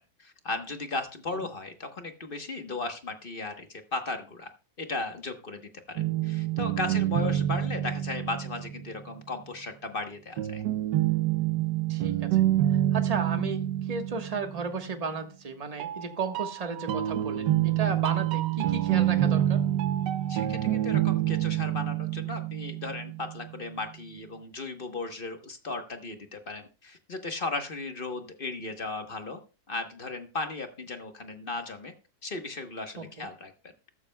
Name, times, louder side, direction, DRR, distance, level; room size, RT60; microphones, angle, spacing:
voice 1, 0.2-4.5 4.8-5.6 5.9-10.6 20.3-29.4 29.7-31.9 32.2-33.5, left 3 dB, 35° left, 6 dB, 1.2 m, -36 dB
sound 1, 6.0-9.1 10.4-15.0 15.8-23.5, right 12 dB, 85° right, 1.3 m, -27 dB
voice 2, 11.9-12.4 12.9-19.6 33.0-33.3, right 5 dB, 25° right, 5 dB, 1.3 m, -34 dB
14.0 x 13.0 x 2.3 m, 0.32 s
omnidirectional pair, 1.8 m